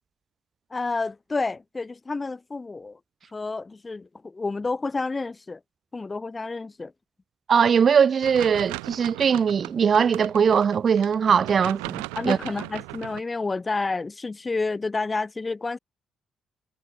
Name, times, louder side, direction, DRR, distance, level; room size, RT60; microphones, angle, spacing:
voice 1, 0.7-3.0 3.3-5.6 5.9-6.9 12.2-15.8, left 3 dB, 30° left, 7.2 m, -29 dB
voice 2, 7.5-12.4, right 7 dB, 55° right, 1.7 m, -20 dB
sound 1, 8.2-13.2, right 40 dB or more, 85° right, 2.0 m, -37 dB
hypercardioid pair, 50°, 0 cm